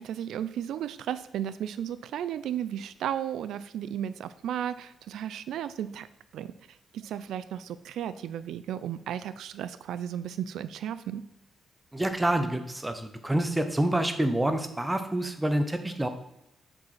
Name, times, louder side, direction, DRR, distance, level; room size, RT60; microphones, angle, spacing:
voice 1, 0.0-6.1 6.3-6.5 6.9-11.2, right 10 dB, 80° right, 14 dB, 0.4 m, -34 dB
voice 2, 11.9-16.1, right 1 dB, 10° right, 8 dB, 0.7 m, -27 dB
7.4 x 5.3 x 5.6 m, 0.86 s
wide cardioid pair, 170°, 0 cm